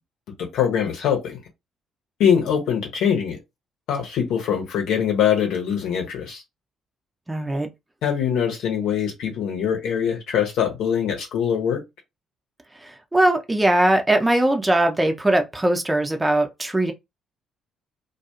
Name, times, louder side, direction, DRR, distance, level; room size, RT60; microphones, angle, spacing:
voice 1, 0.4-1.4 2.2-3.4 3.9-6.4 8.0-11.8, left 8 dB, 65° left, 0.9 m, -23 dB
voice 2, 7.3-7.7 12.7-16.9, right 1 dB, 15° right, 0.6 m, -20 dB
2.4 x 2.3 x 2.9 m
figure-of-eight pair, 45°, 0 cm